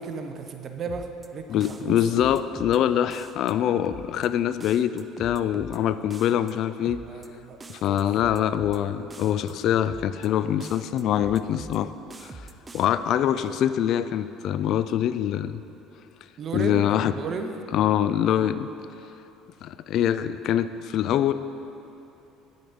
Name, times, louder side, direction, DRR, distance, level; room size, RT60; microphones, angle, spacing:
voice 1, 0.0-2.0 7.1-8.0 16.4-17.5, right 4 dB, 45° right, 6 dB, 0.9 m, -34 dB
sound 1, 0.9-1.3 1.6-2.8 3.1-3.5 3.9-4.3 4.6-5.8 6.1-6.5 6.9-7.3 7.6-8.8 9.1-9.5 9.9-10.3 10.6-11.8 12.1-12.9, right 3 dB, 20° right, 0.6 m, -43 dB
voice 2, 1.5-7.0 7.7-11.9 12.2-12.3 12.7-15.6 16.5-17.1 17.7-18.7 19.6-21.3, left 10 dB, 60° left, 14 dB, 0.3 m, -24 dB
9.4 x 7.9 x 5.1 m, 3.0 s
supercardioid pair, 85°, 0 cm